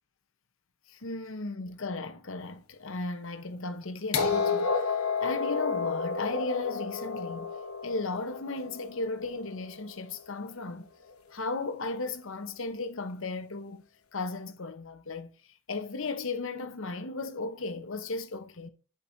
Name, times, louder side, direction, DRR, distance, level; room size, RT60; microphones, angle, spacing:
voice 1, 0.9-4.7 5.2-7.5 7.8-10.9 11.3-13.9 14.1-15.3 15.7-18.7, left 3 dB, 60° left, 0.9 m, -35 dB
sound 1, 4.1-10.0 11.1-11.2, left 5 dB, 85° left, 1.2 m, -31 dB
8.5 x 6.1 x 2.7 m
head